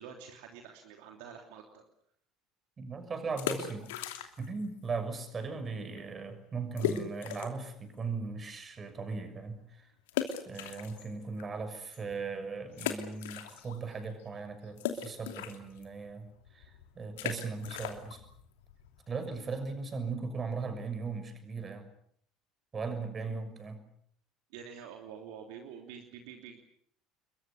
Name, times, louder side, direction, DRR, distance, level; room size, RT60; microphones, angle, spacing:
voice 1, 0.0-1.8 24.5-26.6, right 7 dB, 65° right, 3 dB, 3.1 m, -47 dB
voice 2, 2.8-3.9 4.4-9.9 10.4-18.2 19.1-21.9 22.7-23.8, right 4 dB, 30° right, 8 dB, 6.4 m, -38 dB
sound 1, 3.2-4.6 4.9-5.0 5.6-5.7 5.9-6.0 6.8-7.7 8.2-8.3 10.1-11.4 11.9-12.0 12.7-13.9 14.2-19.7, left 10 dB, 70° left, 2.8 m, -38 dB
30.0 x 22.5 x 7.0 m, 0.65 s
figure-of-eight pair, 65°, 0 cm